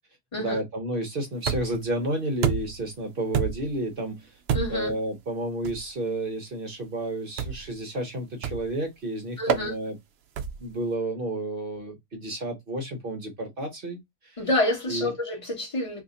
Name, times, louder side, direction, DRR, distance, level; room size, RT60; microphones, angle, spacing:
voice 1, 0.4-4.3 4.7-10.0 10.6-14.4 14.9-15.1, right 1 dB, 50° right, 0.7 m, -31 dB
sound 1, 1.5-1.9 2.4-2.9 3.3-3.8 4.5-4.9 5.6-5.9 7.4-7.7 8.4-8.8 9.5-9.7 10.4-10.7, right 7 dB, 80° right, 0.5 m, -28 dB
voice 2, 4.5-4.9 9.4-9.7 14.4-16.0, left 1 dB, 20° left, 1.2 m, -28 dB
2.8 x 2.7 x 3.7 m
omnidirectional pair, 1.6 m